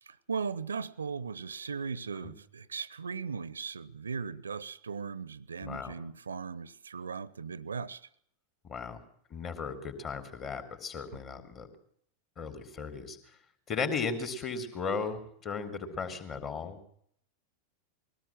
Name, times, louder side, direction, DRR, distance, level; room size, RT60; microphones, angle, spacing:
voice 1, 0.0-8.1, right 5 dB, 70° right, 0.9 m, -38 dB
voice 2, 5.6-5.9 8.6-9.0 9.3-11.7 12.4-13.4 13.7-16.8, left 5 dB, 30° left, 4.0 m, -36 dB
22.0 x 18.0 x 7.6 m
figure-of-eight pair, 90°, 0 cm